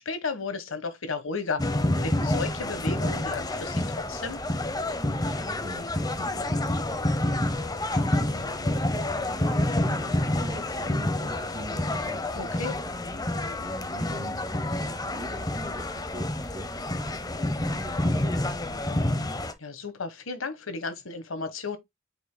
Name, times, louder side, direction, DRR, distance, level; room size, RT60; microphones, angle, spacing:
voice 1, 0.0-3.8 4.1-4.4 12.3-12.8 19.6-21.8, left 4 dB, 75° left, 1.4 m, -34 dB
sound 1, 1.6-19.5, left 1 dB, 20° left, 0.7 m, -28 dB
voice 2, 5.2-12.4 12.9-19.3, equal, 25° right, 2.4 m, -43 dB
8.4 x 5.0 x 2.2 m
head